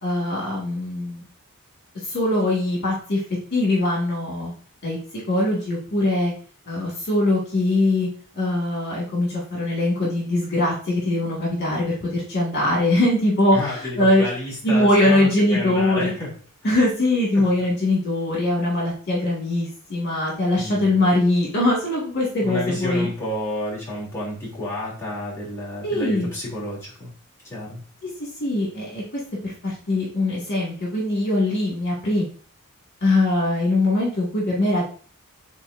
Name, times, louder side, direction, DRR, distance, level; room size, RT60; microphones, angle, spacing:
voice 1, 0.0-1.2 2.0-3.2 3.5-4.5 4.8-5.0 5.3-6.3 6.7-8.1 8.4-14.2 14.6-16.1 16.6-23.1 25.8-26.3 28.4-32.2 33.0-34.8, left 1 dB, 50° left, -4 dB, 2.3 m, -22 dB
voice 2, 13.5-16.3 17.3-17.4 20.5-20.9 22.4-27.1 27.4-27.8, left 1 dB, 10° left, -8 dB, 3.2 m, -30 dB
8.3 x 4.2 x 2.7 m, 0.43 s
head